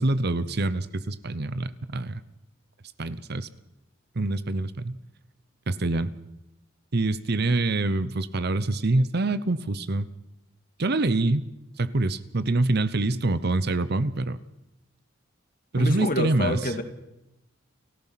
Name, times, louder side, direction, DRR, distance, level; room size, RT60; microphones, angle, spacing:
voice 1, 0.0-2.2 3.0-3.5 4.1-5.0 5.7-6.1 6.9-10.1 10.8-11.4 11.8-14.4 15.7-16.7, right 2 dB, 55° right, 14 dB, 0.9 m, -25 dB
voice 2, 15.8-16.8, left 1 dB, 45° left, 7 dB, 2.1 m, -27 dB
29.5 x 15.0 x 5.9 m, 0.91 s
head